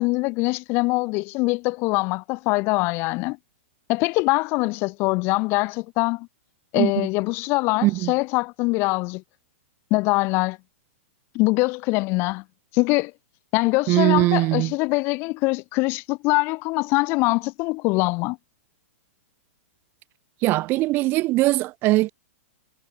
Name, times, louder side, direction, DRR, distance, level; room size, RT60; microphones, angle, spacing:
voice 1, 0.0-3.4 3.9-6.3 6.7-9.2 9.9-10.6 11.3-12.4 12.7-13.1 13.5-18.4, left 25 dB, 30° left, 0.8 m, -23 dB
voice 2, 6.7-7.1 7.8-8.1 13.9-14.7 20.4-22.1, right 19 dB, 30° right, 0.6 m, -21 dB
hypercardioid pair, 150°, 7 cm